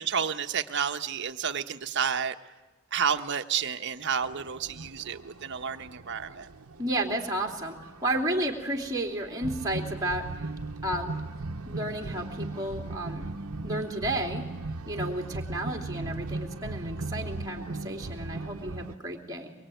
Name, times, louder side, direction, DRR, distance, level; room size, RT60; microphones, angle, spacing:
voice 1, 0.0-2.3 2.9-6.5, right 7 dB, 55° right, 7 dB, 1.2 m, -30 dB
sound 1, 4.2-18.9, right 2 dB, 75° right, 1.0 m, -38 dB
voice 2, 6.8-7.8 8.0-10.5 10.8-11.1 11.6-13.3 13.6-14.5 14.9-19.5, right 1 dB, 15° right, 0 dB, 3.1 m, -32 dB
24.0 x 22.5 x 9.3 m, 1.2 s
head